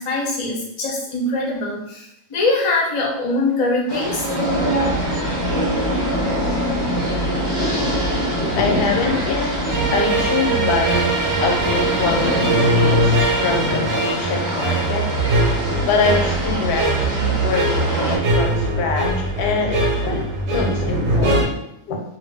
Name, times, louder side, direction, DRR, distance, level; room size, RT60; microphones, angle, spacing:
voice 1, 0.0-4.3 4.6-5.1, left 2 dB, 45° left, -3 dB, 0.4 m, -23 dB
sound 1, 3.9-18.2, equal, 15° right, 0.6 m, -24 dB
voice 2, 7.6-15.1 15.9-22.0, left 4 dB, 85° left, 2 dB, 1.1 m, -24 dB
sound 2, 9.7-21.4, right 2 dB, 60° right, 0.8 m, -21 dB
2.6 x 2.2 x 3.3 m, 0.76 s
omnidirectional pair, 1.6 m